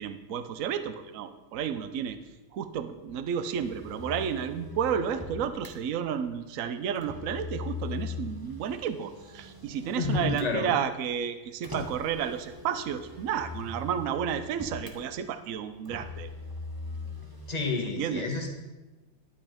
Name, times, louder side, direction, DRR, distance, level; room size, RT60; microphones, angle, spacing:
voice 1, 0.0-2.2 2.5-16.3 17.8-18.3, right 8 dB, 60° right, 11 dB, 0.9 m, -32 dB
Motor vehicle (road), 3.6-5.7 6.9-10.5 11.6-15.0 15.8-17.8, left 3 dB, 15° right, 0.8 m, -40 dB
voice 2, 9.9-10.7 17.5-18.5, left 3 dB, 25° left, 1 dB, 1.3 m, -29 dB
11.0 x 8.6 x 5.1 m, 1.2 s
omnidirectional pair, 2.1 m